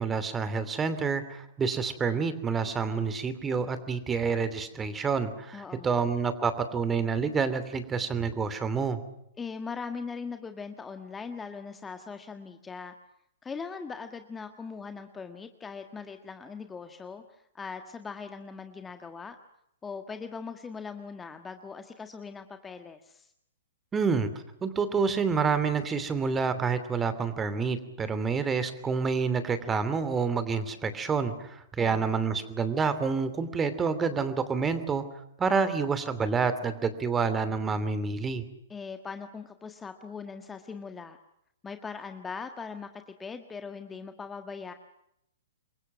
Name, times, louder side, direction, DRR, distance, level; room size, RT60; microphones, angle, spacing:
voice 1, 0.0-9.0 23.9-24.3 24.6-35.0 35.4-38.4, right 5 dB, 15° right, 12 dB, 2.8 m, -28 dB
voice 2, 5.5-6.0 9.4-12.9 13.4-19.4 19.8-23.3 31.7-32.3 38.7-41.2 41.6-44.7, left 5 dB, 15° left, 7 dB, 1.5 m, -40 dB
28.0 x 23.0 x 6.0 m, 0.79 s
figure-of-eight pair, 115°, 0 cm